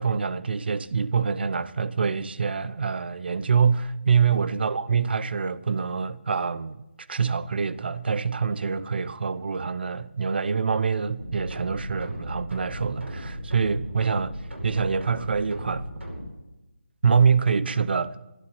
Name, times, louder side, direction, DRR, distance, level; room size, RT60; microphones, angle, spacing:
voice 1, 0.0-6.8 7.1-14.4 14.6-15.9 17.0-18.2, right 5 dB, 60° right, 0.8 m, -25 dB
sound 1, 11.2-16.3, equal, 80° right, 5.2 m, -36 dB
12.0 x 12.0 x 8.6 m
figure-of-eight pair, 160°, 6 cm